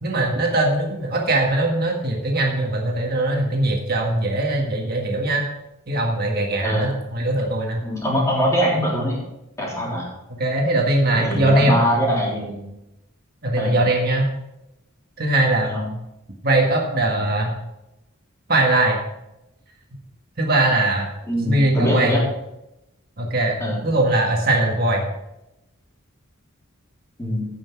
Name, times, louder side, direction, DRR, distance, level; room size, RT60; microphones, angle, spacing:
voice 1, 0.0-5.4 5.9-7.8 10.4-11.8 13.4-14.3 15.2-15.7 16.4-17.5 18.5-19.0 20.4-21.1 21.4-22.1 23.2-23.6 23.8-25.0, right 2 dB, 45° right, 0 dB, 1.7 m, -20 dB
voice 2, 6.6-7.0 7.8-9.2 9.6-10.1 11.2-12.6 13.6-13.8 15.6-15.9 21.3-22.2 23.6-23.8 27.2-27.5, equal, 15° left, -4 dB, 3.3 m, -22 dB
15.5 x 5.9 x 4.7 m, 0.90 s
head